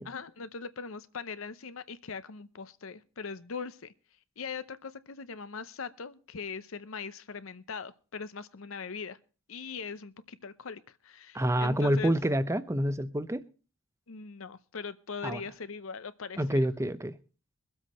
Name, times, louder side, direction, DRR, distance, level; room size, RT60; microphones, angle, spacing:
voice 1, 0.0-3.9 4.4-9.2 9.5-12.1 14.1-16.7, left 5 dB, 75° left, 0.7 m, -41 dB
voice 2, 11.3-13.4 15.2-15.4 16.4-17.2, equal, 15° right, 0.6 m, -27 dB
22.5 x 7.8 x 4.2 m
head